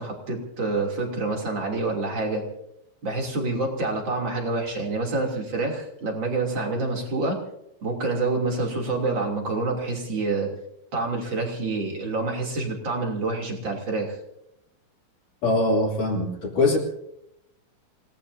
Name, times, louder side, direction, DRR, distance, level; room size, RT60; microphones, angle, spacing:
voice 1, 0.0-2.4 3.0-7.4 7.8-10.5 10.9-14.2, right 3 dB, 35° right, 1 dB, 3.4 m, -27 dB
voice 2, 15.4-16.8, left 2 dB, 60° left, -2 dB, 4.4 m, -22 dB
28.5 x 18.5 x 2.7 m, 0.80 s
omnidirectional pair, 4.2 m